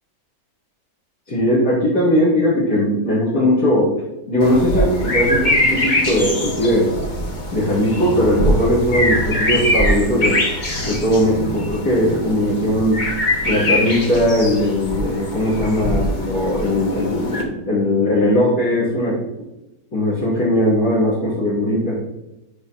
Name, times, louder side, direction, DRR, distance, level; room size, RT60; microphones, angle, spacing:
voice 1, 1.3-3.9 4.3-6.9 7.5-10.4 10.8-13.0 13.4-19.2 19.9-22.0, equal, 75° left, -13 dB, 3.8 m, -19 dB
sound 1, 4.4-17.4, left 1 dB, 35° left, 1.0 m, -22 dB
10.5 x 5.1 x 3.1 m, 0.95 s
omnidirectional pair, 1.8 m